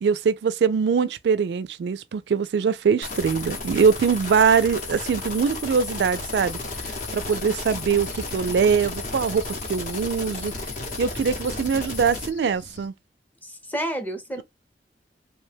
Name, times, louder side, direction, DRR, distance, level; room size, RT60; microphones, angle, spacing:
voice 1, 0.0-6.6 7.1-10.5 11.0-12.9 14.4-14.5, right 6 dB, 70° right, 0.3 m, -22 dB
sound 1, 3.0-12.3, left 3 dB, 50° left, 0.8 m, -33 dB
Cricket, 6.5-12.9, left 3 dB, 75° left, 0.7 m, -47 dB
voice 2, 13.4-14.4, right 1 dB, 10° left, 0.6 m, -30 dB
2.9 x 2.1 x 3.2 m
head